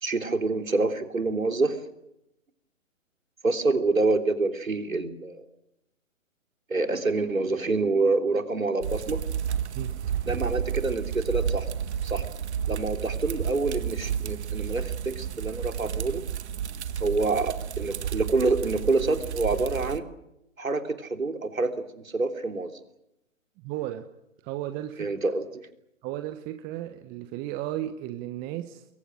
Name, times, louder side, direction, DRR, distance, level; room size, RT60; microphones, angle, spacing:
voice 1, 0.0-1.8 3.4-5.4 6.7-9.2 10.3-11.7 12.0-12.2 12.7-16.2 17.0-20.1 20.6-21.7 22.0-22.7 25.0-25.4, right 3 dB, 85° right, 7 dB, 3.3 m, -27 dB
sound 1, 8.8-20.0, right 8 dB, 55° right, 1.6 m, -31 dB
voice 2, 23.6-24.1 24.4-25.1 26.0-28.8, right 13 dB, 20° right, 9 dB, 1.2 m, -34 dB
29.5 x 22.5 x 6.4 m, 0.85 s
figure-of-eight pair, 125°, 40 cm